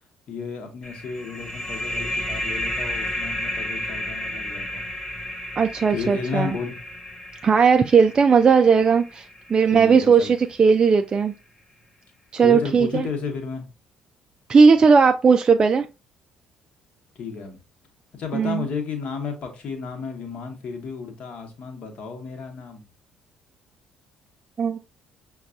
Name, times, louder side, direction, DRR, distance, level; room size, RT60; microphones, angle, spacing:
voice 1, 0.3-4.8 5.9-6.7 9.7-10.3 12.4-13.6 17.1-17.6 18.1-22.8, left 5 dB, 50° left, 1.1 m, -32 dB
sound 1, 0.8-10.1, left 1 dB, 25° left, 1.2 m, -32 dB
voice 2, 5.6-6.6 7.4-9.2 9.5-11.3 12.3-13.1 14.5-15.9 18.3-18.7 24.6-24.8, right 5 dB, 30° right, 0.3 m, -17 dB
6.3 x 2.3 x 2.5 m
figure-of-eight pair, 50°, 3 cm